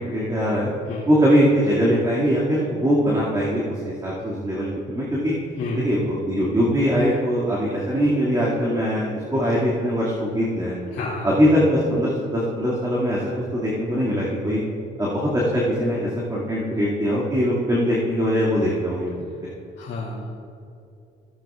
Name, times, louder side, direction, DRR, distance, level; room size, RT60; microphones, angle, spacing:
voice 1, 0.0-0.7 1.1-5.3 5.8-10.8 11.2-13.2 13.5-14.6 15.0-19.1, equal, 20° right, -7 dB, 2.3 m, -21 dB
voice 2, 10.9-11.3 19.8-20.4, left 3 dB, 70° left, -9 dB, 2.2 m, -30 dB
15.0 x 9.1 x 2.5 m, 2.6 s
cardioid pair, 90°, 20 cm